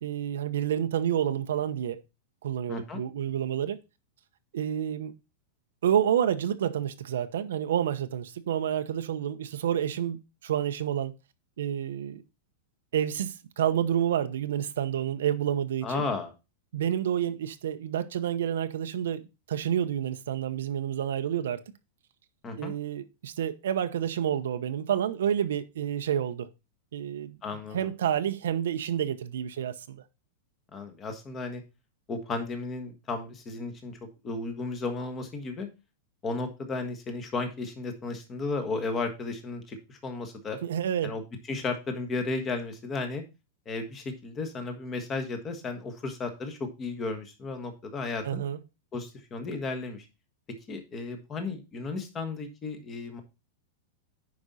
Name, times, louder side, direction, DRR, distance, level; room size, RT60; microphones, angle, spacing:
voice 1, 0.0-2.0 2.4-3.8 4.5-5.1 5.8-11.1 11.6-12.2 12.9-16.0 16.7-21.6 22.6-26.5 26.9-27.4 27.7-30.0 40.6-41.1 48.2-48.6, right 10 dB, 85° right, 0.9 m, -29 dB
voice 2, 2.7-3.0 15.8-16.3 22.4-22.7 27.4-27.9 30.7-31.6 32.1-35.7 36.2-40.6 41.0-41.2 41.5-43.2 43.6-48.4 48.9-50.0 50.5-53.2, left 3 dB, 15° left, 1.4 m, -34 dB
9.7 x 5.2 x 4.1 m
supercardioid pair, 175°, 0 cm